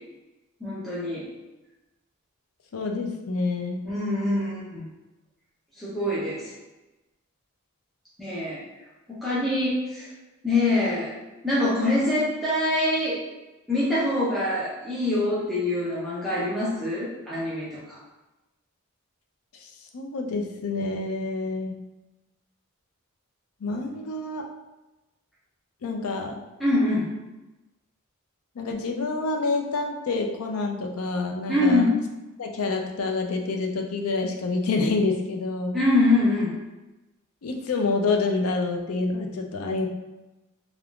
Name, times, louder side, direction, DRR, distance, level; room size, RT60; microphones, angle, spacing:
voice 1, 0.6-1.3 3.8-4.9 5.8-6.5 8.2-8.6 9.1-10.1 10.4-11.1 11.4-13.2 13.7-18.0 26.6-27.1 31.5-31.9 35.7-36.5, left 2 dB, ahead, -10 dB, 0.6 m, -24 dB
voice 2, 2.7-3.8 19.6-21.7 23.6-24.5 25.8-26.4 28.6-31.9 32.4-35.8 37.4-39.9, left 3 dB, 75° left, 3 dB, 0.4 m, -27 dB
3.5 x 2.3 x 2.3 m, 1.1 s
head